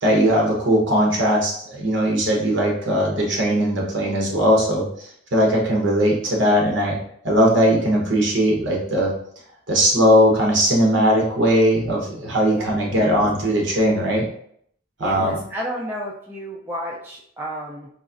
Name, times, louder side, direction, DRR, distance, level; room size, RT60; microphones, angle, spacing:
voice 1, 0.0-7.0 7.2-9.1 9.7-14.2 15.0-15.4, equal, 65° right, -1 dB, 0.9 m, -19 dB
voice 2, 12.5-13.2 15.0-17.9, equal, 10° right, -4 dB, 0.3 m, -32 dB
4.0 x 2.4 x 2.5 m, 0.67 s
head